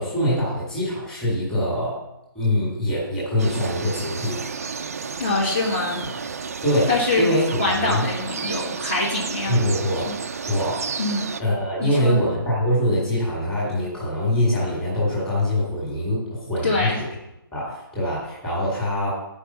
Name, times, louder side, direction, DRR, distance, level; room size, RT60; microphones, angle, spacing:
voice 1, 0.0-2.0 2.4-4.4 6.6-8.1 9.5-10.1 10.5-10.9 11.4-17.1 17.5-19.1, left 1 dB, 5° left, -7 dB, 2.0 m, -23 dB
sound 1, 3.4-11.4, right 5 dB, 40° right, 0.4 m, -32 dB
voice 2, 5.2-6.0 6.9-7.3 7.6-9.6 10.1-10.2 11.0-11.3 11.8-12.2 16.6-17.0, left 2 dB, 30° left, -5 dB, 1.5 m, -24 dB
10.5 x 4.9 x 5.6 m, 0.90 s
hypercardioid pair, 175°, 12 cm